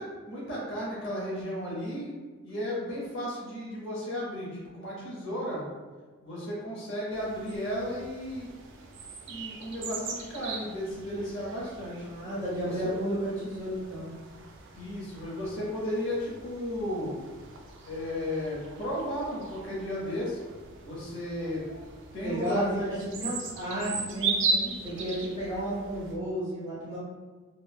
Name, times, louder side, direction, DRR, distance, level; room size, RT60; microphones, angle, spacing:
voice 1, 0.0-2.1 2.4-5.6 6.2-8.5 9.3-12.1 12.6-12.9 14.7-17.2 17.9-20.4 20.8-21.6 22.1-23.1, equal, 55° left, -5 dB, 0.7 m, -34 dB
sound 1, 7.1-26.2, right 4 dB, 55° right, 0.3 m, -38 dB
voice 2, 12.0-14.1 22.2-27.0, equal, 20° right, -10 dB, 0.8 m, -33 dB
3.1 x 2.1 x 2.3 m, 1.4 s
head